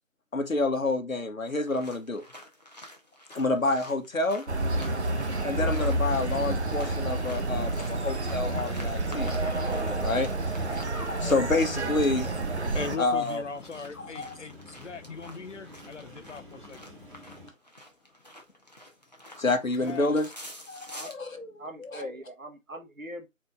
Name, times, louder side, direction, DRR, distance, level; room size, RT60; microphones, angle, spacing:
voice 1, 0.3-2.2 3.3-4.4 5.4-9.3 9.7-10.3 10.6-12.3 13.0-13.4 14.0-14.4 19.4-20.3 20.7-21.5 21.9-22.0, left 2 dB, 85° left, 1.1 m, -28 dB
sound 1, 1.4-21.1, left 1 dB, 30° left, 0.8 m, -49 dB
sound 2, 4.5-13.0, right 2 dB, 55° right, 0.7 m, -29 dB
sound 3, 4.6-17.5, left 2 dB, 40° right, 1.1 m, -49 dB
voice 2, 12.7-16.8 19.8-20.1, left 5 dB, 65° left, 0.7 m, -39 dB
voice 3, 21.6-23.3, equal, 85° right, 1.2 m, -41 dB
4.2 x 3.1 x 3.6 m
figure-of-eight pair, 165°, 39 cm